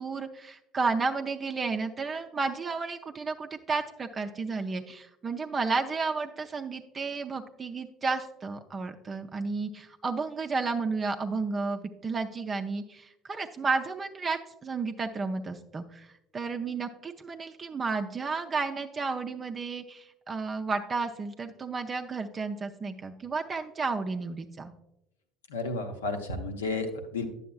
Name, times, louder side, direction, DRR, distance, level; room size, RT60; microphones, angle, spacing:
voice 1, 0.0-24.7, right 4 dB, 30° right, 5 dB, 0.4 m, -32 dB
voice 2, 25.5-27.3, left 3 dB, 75° left, 6 dB, 0.7 m, -32 dB
10.0 x 7.0 x 2.3 m, 0.88 s
figure-of-eight pair, 60°, 0 cm